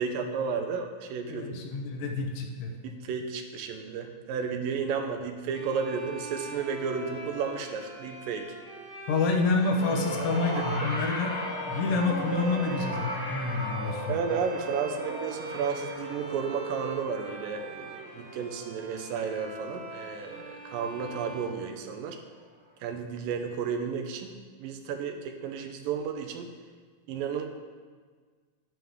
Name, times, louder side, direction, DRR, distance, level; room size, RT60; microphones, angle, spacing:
voice 1, 0.0-1.5 2.8-8.5 10.8-10.9 14.1-22.2 22.8-26.5 27.1-27.5, right 6 dB, 90° right, 4 dB, 2.5 m, -33 dB
voice 2, 1.3-2.7 9.1-14.1, left 3 dB, 80° left, 3 dB, 2.6 m, -28 dB
sound 1, 5.5-22.3, right 4 dB, 70° right, 3.0 m, -42 dB
sound 2, 9.6-20.0 21.0-21.1, left 1 dB, 40° left, 1.3 m, -37 dB
9.4 x 9.2 x 3.6 m, 1.6 s
omnidirectional pair, 3.9 m